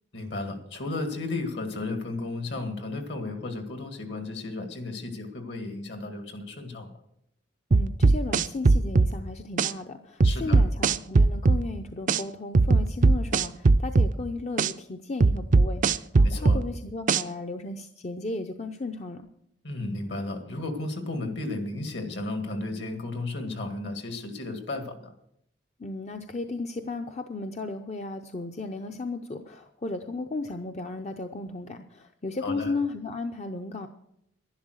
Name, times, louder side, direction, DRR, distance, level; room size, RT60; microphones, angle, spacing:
voice 1, 0.1-6.9 10.2-10.6 16.2-16.6 19.6-25.1 32.4-32.7, left 2 dB, 65° left, 6 dB, 2.0 m, -34 dB
voice 2, 7.7-19.3 25.8-33.9, left 3 dB, 35° left, 5 dB, 0.6 m, -35 dB
sound 1, 7.7-9.1 9.6-9.7 10.2-11.6 12.1-12.2 12.5-14.1 14.6-14.7 15.2-16.6 17.1-17.2, right 3 dB, 45° right, 0.4 m, -19 dB
11.5 x 11.0 x 6.4 m, 0.75 s
head